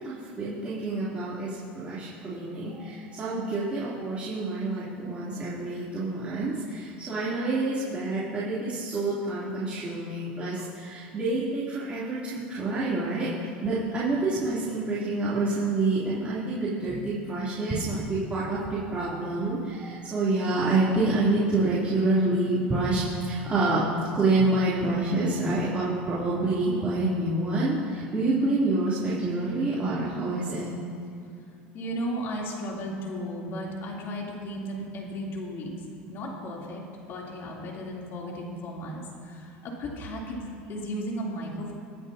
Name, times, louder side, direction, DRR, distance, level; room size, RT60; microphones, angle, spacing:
voice 1, 0.0-13.3 13.6-23.8 24.1-30.7, right 2 dB, 25° right, -10 dB, 3.2 m, -27 dB
voice 2, 31.7-35.7 36.1-41.7, equal, 50° left, -3 dB, 3.3 m, -35 dB
24.5 x 10.0 x 2.9 m, 2.4 s
supercardioid pair, 105°, 5 cm